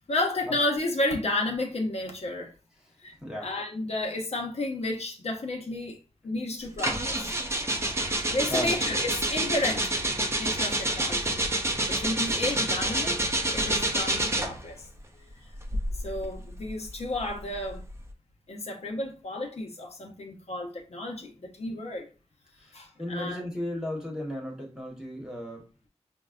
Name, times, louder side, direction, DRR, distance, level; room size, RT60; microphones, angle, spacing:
voice 1, 0.1-2.5 3.0-7.3 8.3-10.0 10.3-11.4 11.9-13.2 13.5-14.9 16.0-17.8 18.5-22.1 22.7-23.4, left 2 dB, 60° left, 0.7 m, -32 dB
sound 1, 6.8-14.7 15.5-18.0, right 1 dB, 20° right, 0.5 m, -28 dB
voice 2, 22.7-25.6, left 1 dB, 5° right, 1.1 m, -34 dB
5.2 x 2.1 x 2.4 m
wide cardioid pair, 100°, 12 cm